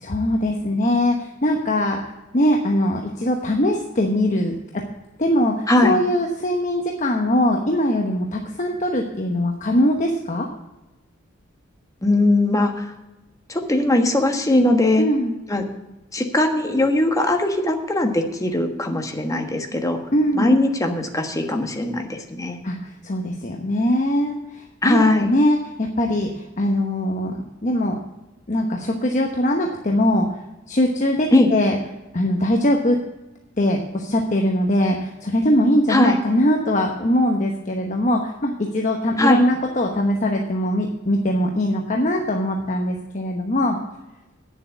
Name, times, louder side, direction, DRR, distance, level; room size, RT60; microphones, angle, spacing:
voice 1, 0.0-2.0 2.3-4.5 5.2-10.5 15.0-15.3 20.1-20.6 22.6-27.3 27.6-28.0 28.5-30.3 30.7-31.8 32.1-33.0 33.6-43.8, left 1 dB, 40° left, 2 dB, 1.1 m, -21 dB
voice 2, 5.7-6.0 12.0-12.9 13.5-15.0 15.5-15.6 16.1-20.0 20.3-22.6 24.8-25.3 31.3-31.5 35.9-36.2 39.2-39.4, left 1 dB, 15° left, 4 dB, 1.3 m, -20 dB
9.6 x 7.4 x 8.3 m, 1.0 s
head